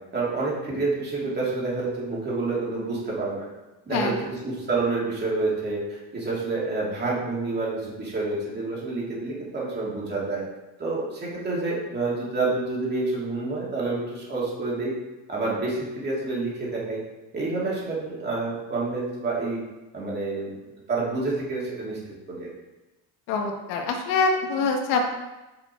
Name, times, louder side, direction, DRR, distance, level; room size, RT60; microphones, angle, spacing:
voice 1, 0.1-3.5 3.9-10.4 10.8-14.9 15.3-17.0 17.3-19.6 19.9-20.5 20.9-22.0 22.3-22.5, right 3 dB, 25° right, -6 dB, 2.7 m, -28 dB
voice 2, 23.3-25.1, left 4 dB, 65° left, 3 dB, 1.2 m, -24 dB
7.0 x 5.2 x 4.5 m, 1.0 s
cardioid pair, 145°, 40 cm